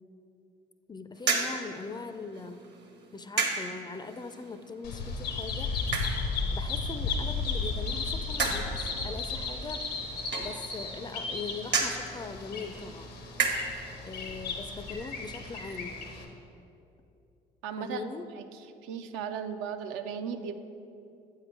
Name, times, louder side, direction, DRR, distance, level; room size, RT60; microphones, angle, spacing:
voice 1, 0.9-2.7 3.1-5.7 6.4-9.9 10.4-13.1 14.0-16.0 17.8-18.3, left 4 dB, 20° left, 10 dB, 0.3 m, -41 dB
sound 1, 1.1-13.9, right 4 dB, 55° right, 1.0 m, -35 dB
Bird vocalization bird call bird song, 4.8-16.2, left 4 dB, 85° left, 0.7 m, -34 dB
voice 2, 17.6-18.4 18.8-20.6, right 7 dB, 75° right, 8 dB, 0.4 m, -36 dB
7.9 x 3.7 x 4.6 m, 2.8 s
hypercardioid pair, 55°, 21 cm